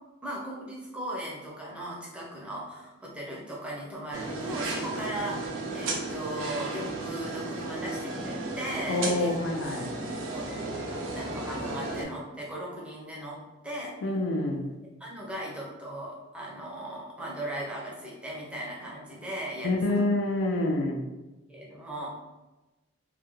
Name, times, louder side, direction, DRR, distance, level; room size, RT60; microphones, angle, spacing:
voice 1, 0.2-9.4 10.2-10.5 11.1-14.0 15.0-20.0 21.5-22.1, right 1 dB, 5° right, -4 dB, 0.5 m, -38 dB
sound 1, 4.1-12.0, right 2 dB, 85° right, 0.5 m, -34 dB
voice 2, 8.9-9.9 14.0-14.7 19.6-21.0, left 2 dB, 80° left, 2 dB, 0.4 m, -27 dB
2.4 x 2.1 x 2.9 m, 1.1 s
head